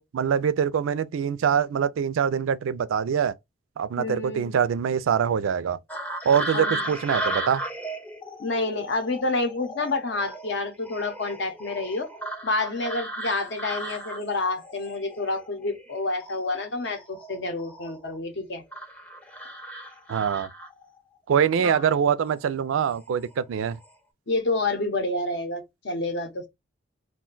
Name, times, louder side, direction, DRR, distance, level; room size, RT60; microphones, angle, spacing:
voice 1, 0.0-3.3 3.8-5.8 6.2-7.6 20.1-20.5 21.3-23.8, right 7 dB, 80° right, 0.3 m, -24 dB
voice 2, 4.0-4.6 6.5-6.9 8.4-12.1 12.4-18.6 21.6-21.9 24.3-26.5, left 2 dB, 60° left, 0.7 m, -28 dB
sound 1, 5.9-15.9 16.2-18.2 18.7-21.0 22.2-22.4 22.9-23.3 23.6-23.9, right 1 dB, 10° left, 0.5 m, -36 dB
2.4 x 2.2 x 3.7 m
head